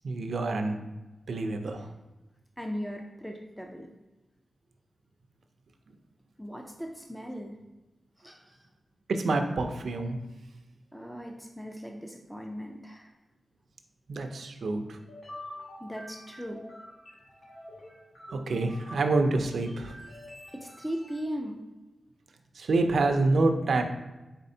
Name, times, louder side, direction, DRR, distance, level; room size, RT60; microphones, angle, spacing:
voice 1, 0.0-0.8 1.3-1.9 9.1-10.2 14.1-15.0 18.3-19.9 22.6-23.8, right 3 dB, 70° right, 5 dB, 0.4 m, -27 dB
voice 2, 2.6-3.9 6.4-7.6 8.2-8.6 10.9-13.1 15.8-16.6 20.5-21.6, equal, 5° left, 1 dB, 0.3 m, -38 dB
sound 1, 15.0-21.2, left 1 dB, 55° left, 1.3 m, -47 dB
4.2 x 4.1 x 2.7 m, 1.1 s
wide cardioid pair, 165°, 0 cm